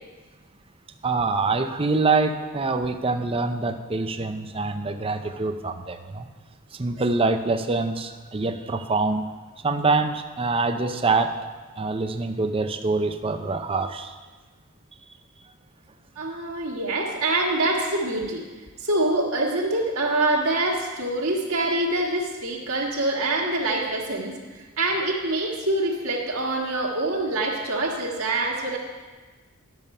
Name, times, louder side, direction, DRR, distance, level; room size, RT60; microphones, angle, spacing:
voice 1, 1.0-6.3 6.7-9.2 9.6-11.3 11.8-14.1, right 3 dB, 25° right, 7 dB, 0.6 m, -25 dB
voice 2, 16.1-18.4 18.8-24.3 24.8-28.8, right 2 dB, 65° right, -2 dB, 1.6 m, -25 dB
11.0 x 7.0 x 5.4 m, 1.3 s
head